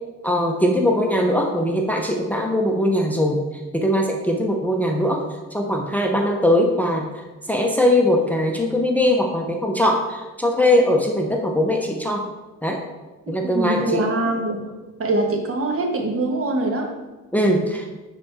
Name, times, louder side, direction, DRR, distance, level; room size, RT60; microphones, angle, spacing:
voice 1, 0.2-3.4 3.7-5.2 5.5-7.1 7.5-12.2 12.6-12.8 13.3-14.0 17.3-17.8, left 1 dB, 5° left, 1 dB, 0.7 m, -20 dB
voice 2, 13.4-14.6 15.0-16.9, right 2 dB, 45° right, 2 dB, 1.4 m, -23 dB
9.0 x 4.0 x 3.6 m, 1.2 s
cardioid pair, 90°, 30 cm